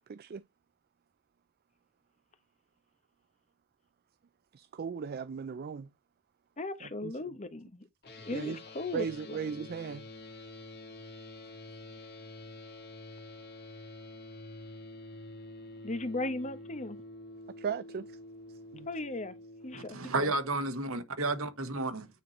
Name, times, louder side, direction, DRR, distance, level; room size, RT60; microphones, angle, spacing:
voice 1, 0.1-0.4 4.6-5.9 8.3-8.6 8.9-10.0 17.6-18.0 18.7-18.9, right 6 dB, 45° right, 0.4 m, -36 dB
voice 2, 6.6-7.9 8.2-9.4 15.8-17.0 18.9-19.4 19.6-20.3, left 2 dB, 35° left, 0.9 m, -37 dB
sound 1, 8.0-19.9, left 2 dB, 50° left, 2.1 m, -48 dB
voice 3, 19.7-22.1, right 2 dB, 80° right, 1.4 m, -32 dB
9.2 x 4.3 x 3.1 m
head